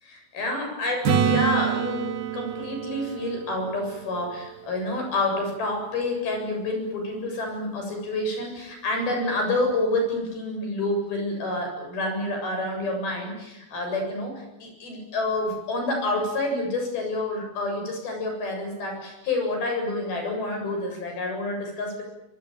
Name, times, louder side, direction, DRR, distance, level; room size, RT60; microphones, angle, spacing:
voice 1, 0.0-1.0 1.2-22.0, left 2 dB, 80° left, 3 dB, 9.6 m, -28 dB
Acoustic guitar / Strum, 1.0-4.8 9.7-9.8, right 8 dB, 80° right, 4.8 m, -27 dB
24.5 x 24.5 x 9.2 m, 0.90 s
omnidirectional pair, 4.3 m